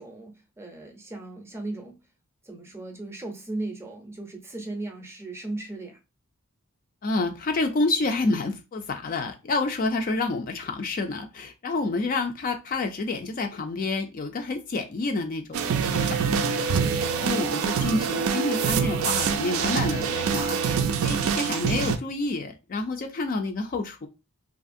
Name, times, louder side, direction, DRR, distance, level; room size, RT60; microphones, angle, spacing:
voice 1, 0.0-2.0 2.4-6.0, right 2 dB, 10° right, 0.5 m, -37 dB
voice 2, 7.0-20.6 21.0-24.1, left 3 dB, 40° left, 0.3 m, -29 dB
sound 1, 15.5-22.0, right 6 dB, 65° right, 0.4 m, -25 dB
2.8 x 2.5 x 2.5 m
head